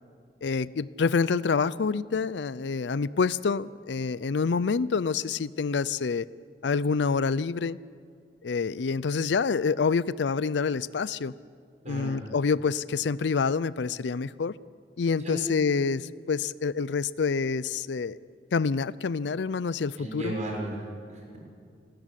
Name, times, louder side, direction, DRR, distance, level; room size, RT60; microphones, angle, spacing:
voice 1, 0.4-6.3 6.6-7.8 8.4-11.3 11.9-14.5 15.0-18.2 18.5-20.3, left 5 dB, 75° left, 18 dB, 0.5 m, -27 dB
voice 2, 20.0-21.4, right 1 dB, 45° right, 0 dB, 6.1 m, -35 dB
27.5 x 14.0 x 9.9 m, 2.2 s
head